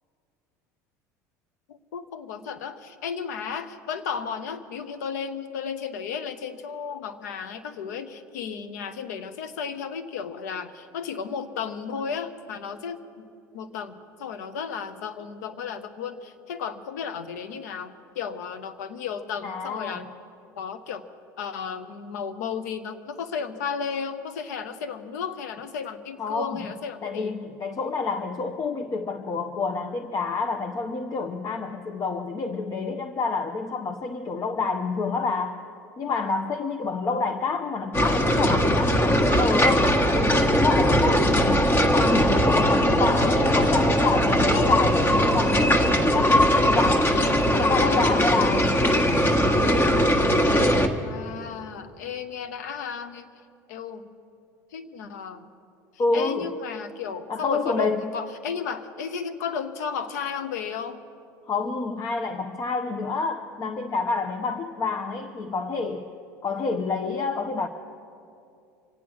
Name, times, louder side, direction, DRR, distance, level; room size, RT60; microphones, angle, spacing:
voice 1, 1.7-13.3 13.5-20.1 20.6-21.0 21.4-27.4 51.0-53.3 53.7-54.0 54.7-55.5 56.1-61.0, left 6 dB, 80° left, 10 dB, 0.9 m, -34 dB
voice 2, 19.4-20.0 26.2-26.6 27.0-35.6 36.0-47.1 47.5-48.8 56.0-56.5 57.3-58.0 61.5-66.1 66.4-67.7, left 4 dB, 40° left, 6 dB, 0.8 m, -28 dB
sound 1, 37.9-50.9, equal, 25° left, 1.4 m, -20 dB
25.5 x 8.5 x 6.3 m, 2.5 s
hypercardioid pair, 80°, 9 cm